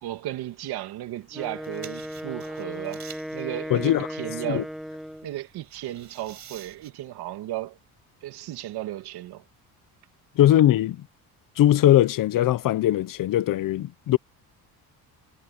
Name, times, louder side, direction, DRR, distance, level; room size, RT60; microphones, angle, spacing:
voice 1, 0.0-3.1 3.3-4.7 5.2-7.8 8.2-9.4, right 14 dB, 80° right, 2.5 m, -35 dB
Wind instrument woodwind instrument, 1.3-5.4, equal, ahead, 2.1 m, -36 dB
sound 1, 1.4-6.9, right 9 dB, 45° right, 7.4 m, -49 dB
voice 2, 3.7-4.1 4.5-4.6 10.4-11.0 11.6-14.2, left 13 dB, 55° left, 0.9 m, -20 dB
cardioid pair, 145°, 38 cm